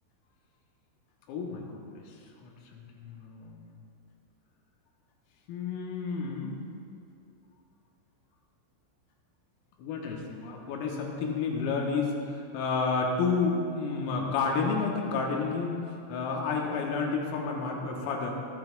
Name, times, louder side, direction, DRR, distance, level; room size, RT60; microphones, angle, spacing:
voice 1, 1.3-2.1 2.4-3.7 5.5-6.6 9.8-18.3, left 4 dB, 90° left, 0 dB, 3.8 m, -31 dB
21.5 x 9.4 x 2.3 m, 2.5 s
omnidirectional pair, 5.9 m